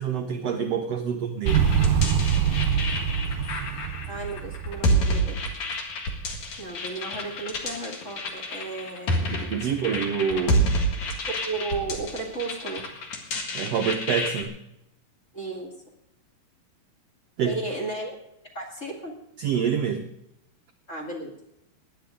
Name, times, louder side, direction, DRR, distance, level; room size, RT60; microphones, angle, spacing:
voice 1, 0.0-1.7 9.2-10.8 13.5-14.5 17.4-17.6 19.4-20.1, right 7 dB, 70° right, 5 dB, 1.6 m, -27 dB
sound 1, 1.5-14.4, equal, 60° left, 3.0 m, -29 dB
Motorcycle, 1.5-5.4, right 8 dB, 85° right, 2.8 m, -24 dB
voice 2, 4.1-5.4 6.6-9.2 9.6-9.7 11.4-12.8 15.3-15.7 17.4-18.1 18.5-19.1 20.9-21.3, right 3 dB, 25° left, 1 dB, 2.0 m, -34 dB
19.0 x 10.0 x 5.2 m, 0.82 s
omnidirectional pair, 3.8 m